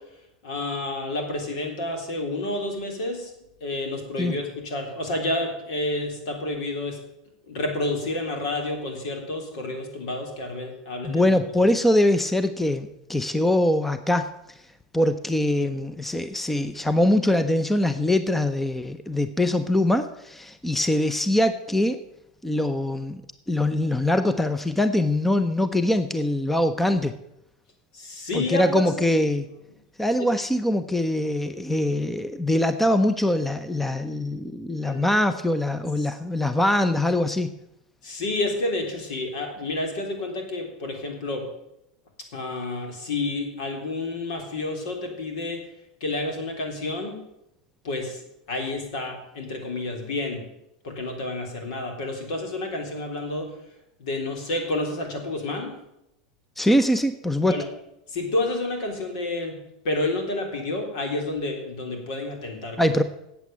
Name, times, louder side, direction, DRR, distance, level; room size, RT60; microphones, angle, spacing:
voice 1, 0.4-3.3 3.6-7.0 7.5-11.4 27.9-28.9 34.8-35.0 38.0-41.4 42.3-45.6 46.0-47.2 47.8-48.2 48.5-50.4 50.8-53.5 54.0-55.7 57.5-57.7 58.1-59.6 59.8-62.9, left 2 dB, 70° left, 3 dB, 3.6 m, -29 dB
voice 2, 11.0-14.3 14.9-22.0 22.4-23.2 23.5-27.1 28.3-29.5 30.0-37.5 56.6-57.6 62.8-63.0, left 1 dB, 5° left, 11 dB, 0.6 m, -23 dB
8.4 x 8.1 x 8.9 m, 0.84 s
supercardioid pair, 120°, 4 cm